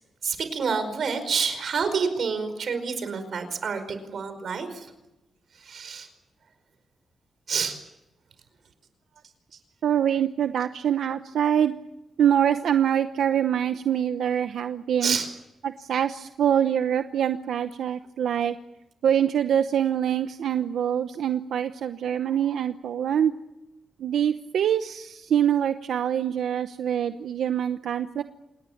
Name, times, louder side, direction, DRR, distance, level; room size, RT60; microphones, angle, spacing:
voice 1, 0.2-4.9 5.5-6.1 7.5-7.8 15.0-15.3, right 5 dB, 60° right, 9 dB, 4.9 m, -28 dB
voice 2, 9.8-11.7 12.2-15.2 15.6-18.6 19.0-23.3 24.0-28.2, right 9 dB, 90° right, 9 dB, 0.9 m, -24 dB
27.5 x 20.5 x 7.3 m, 0.94 s
wide cardioid pair, 135°, 0 cm